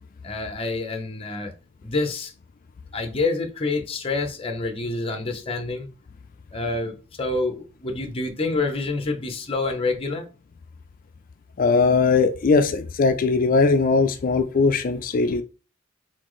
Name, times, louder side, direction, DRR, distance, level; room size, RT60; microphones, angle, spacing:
voice 1, 0.2-1.5 1.8-2.3 2.9-5.9 6.5-10.3, left 3 dB, 30° left, 0.7 m, -27 dB
voice 2, 11.6-15.4, left 4 dB, 45° left, 0.4 m, -20 dB
4.2 x 3.9 x 3.1 m
head